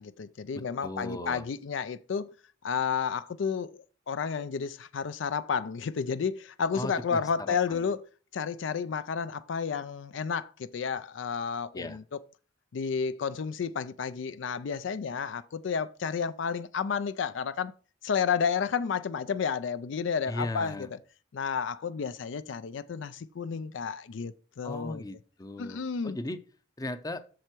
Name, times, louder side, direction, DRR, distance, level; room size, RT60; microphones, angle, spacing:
voice 1, 0.0-2.3 2.6-8.0 8.3-12.2 12.7-17.7 18.0-20.9 21.3-25.0 25.6-26.2, left 6 dB, 70° left, 0.4 m, -31 dB
voice 2, 0.5-1.5 6.7-7.8 11.7-12.0 20.3-20.9 24.6-26.4 26.8-27.2, left 1 dB, 20° left, 0.6 m, -37 dB
7.7 x 6.7 x 4.5 m
head